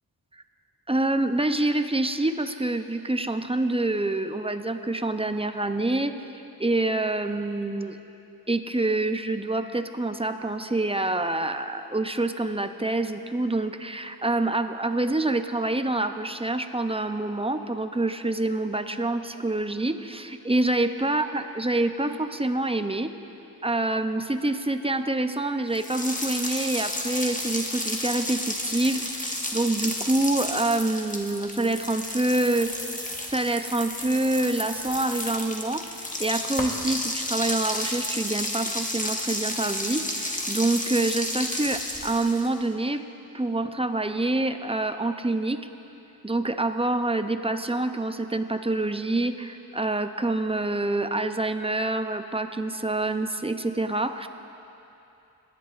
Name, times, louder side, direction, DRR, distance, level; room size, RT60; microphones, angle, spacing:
voice 1, 0.9-6.2 6.6-8.0 8.5-23.1 23.6-32.7 33.3-43.1 43.3-45.7 46.2-54.3, right 2 dB, 15° right, 8 dB, 0.5 m, -26 dB
sound 1, 25.7-42.6, left 1 dB, 20° left, 1.1 m, -32 dB
24.0 x 10.5 x 2.5 m, 2.8 s
wide cardioid pair, 45°, 38 cm